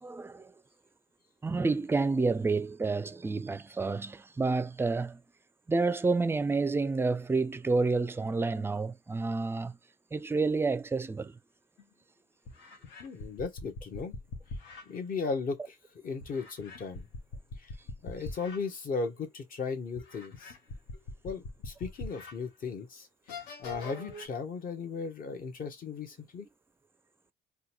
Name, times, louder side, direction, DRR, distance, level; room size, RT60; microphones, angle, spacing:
voice 1, 0.0-0.5 1.4-5.2 5.7-9.8 10.1-11.4, right 3 dB, 15° right, 0.4 m, -29 dB
sound 1, 11.8-11.9 12.5-14.9 16.2-18.6 19.1-19.2 20.0-22.3 22.8-22.9 23.3-24.3, left 3 dB, 90° left, 1.0 m, -42 dB
voice 2, 13.0-14.1 14.9-15.7 16.0-17.1 17.6-17.7 18.0-20.5 21.2-26.5, left 4 dB, 55° left, 1.1 m, -36 dB
3.6 x 2.3 x 3.0 m
cardioid pair, 95°, 18 cm